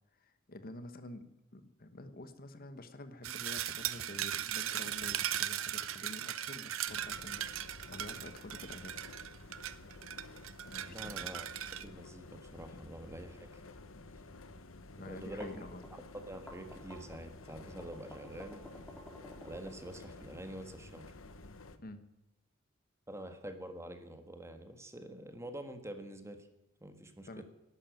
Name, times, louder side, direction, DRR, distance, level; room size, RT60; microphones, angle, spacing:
voice 1, 0.2-7.5 7.9-9.1 10.7-11.4 14.9-15.8 21.8-22.0 27.3-27.4, left 2 dB, 45° left, 10 dB, 1.3 m, -49 dB
sound 1, 3.2-11.9, right 11 dB, 75° right, 0.8 m, -38 dB
sound 2, 6.9-21.8, left 2 dB, 80° left, 1.3 m, -52 dB
voice 2, 10.9-11.5 11.8-13.6 15.0-15.5 15.9-18.7 19.4-21.1 23.1-26.5 26.8-27.4, right 1 dB, 15° right, 7 dB, 1.6 m, -46 dB
sound 3, 15.4-20.4, equal, 5° left, 3.6 m, -52 dB
12.5 x 11.5 x 9.2 m, 0.97 s
head